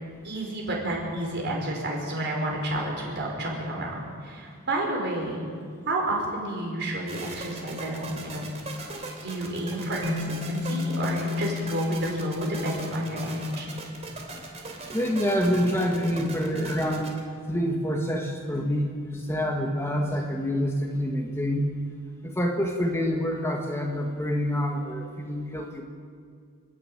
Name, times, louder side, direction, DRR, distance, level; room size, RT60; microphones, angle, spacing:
voice 1, 0.2-5.4 5.9-8.4 9.2-13.7, right 1 dB, 50° right, -1 dB, 5.3 m, -30 dB
sound 1, 7.1-17.2, right 3 dB, 30° right, 3.1 m, -39 dB
sound 2, 10.0-14.3, left 5 dB, 85° right, 2.8 m, -33 dB
voice 2, 14.9-17.1 17.5-21.6 22.2-25.8, equal, 10° left, 1 dB, 1.5 m, -27 dB
28.0 x 10.5 x 9.0 m, 2.1 s
head